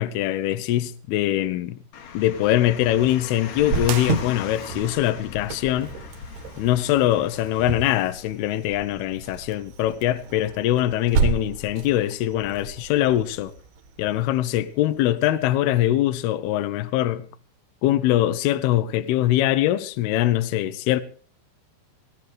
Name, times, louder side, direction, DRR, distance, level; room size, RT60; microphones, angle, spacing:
voice 1, 0.0-1.8 2.1-5.9 6.6-13.5 14.0-17.3 17.8-21.0, left 13 dB, 85° left, 2.3 m, -22 dB
Car, 1.9-7.8, left 6 dB, 65° left, 3.8 m, -39 dB
Cricket, 3.6-15.0, right 6 dB, 65° right, 3.0 m, -32 dB
sound 1, 3.8-4.9, right 13 dB, 80° right, 3.3 m, -35 dB
18.0 x 17.0 x 3.2 m
omnidirectional pair, 5.6 m